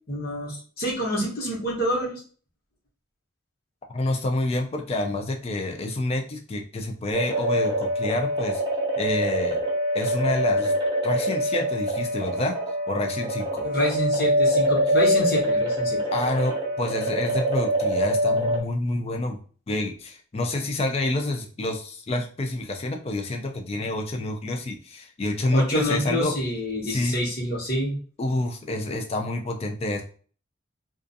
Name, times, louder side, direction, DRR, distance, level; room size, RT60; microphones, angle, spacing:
voice 1, 0.1-2.2 13.6-16.0 25.5-28.0, equal, 50° left, -3 dB, 1.0 m, -27 dB
voice 2, 3.9-8.6 9.0-9.6 9.9-10.7 11.0-12.6 12.9-13.7 16.1-19.4 19.7-26.3 26.8-27.2 28.2-30.0, left 2 dB, 30° left, 3 dB, 0.4 m, -28 dB
sound 1, 7.1-18.6, equal, 20° right, 0.6 m, -25 dB
2.4 x 2.3 x 2.6 m, 0.41 s
head